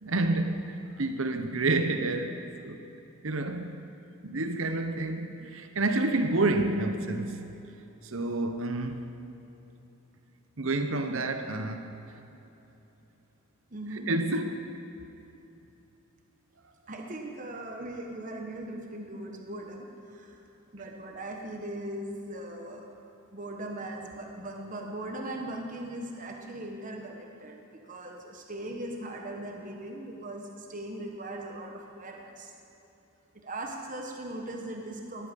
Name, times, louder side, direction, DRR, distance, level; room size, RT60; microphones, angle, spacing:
voice 1, 0.0-2.8 3.2-3.8 4.2-7.5 8.0-9.1 10.6-11.9 14.1-14.8, right 2 dB, 60° right, 0.9 m, -29 dB
voice 2, 13.7-14.1 16.9-20.4 20.7-22.9 23.3-32.5 33.4-35.3, right 1 dB, 35° right, 1.3 m, -39 dB
19.5 x 14.0 x 5.3 m
head